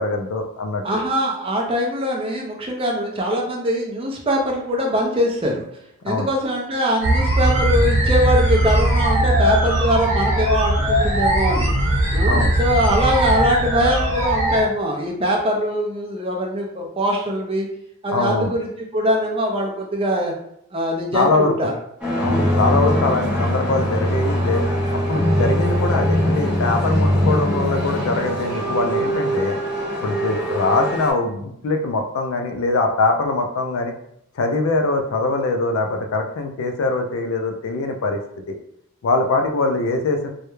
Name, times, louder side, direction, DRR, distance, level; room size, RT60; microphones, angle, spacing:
voice 1, 0.0-1.0 6.1-6.3 12.3-12.5 18.1-18.5 21.1-21.7 22.2-24.6 25.1-29.6 30.0-33.9 34.4-38.2 38.5-38.6 39.0-40.3, left 3 dB, 65° left, 5 dB, 0.4 m, -22 dB
voice 2, 0.8-5.6 6.0-11.7 12.1-17.7 18.0-20.3 20.7-21.7 22.3-22.6, equal, 25° right, 0 dB, 0.4 m, -22 dB
sound 1, 7.0-14.6, right 1 dB, 60° right, 0.8 m, -19 dB
sound 2, 22.0-31.1, equal, 5° right, 0.8 m, -21 dB
2.3 x 2.1 x 3.0 m, 0.72 s
head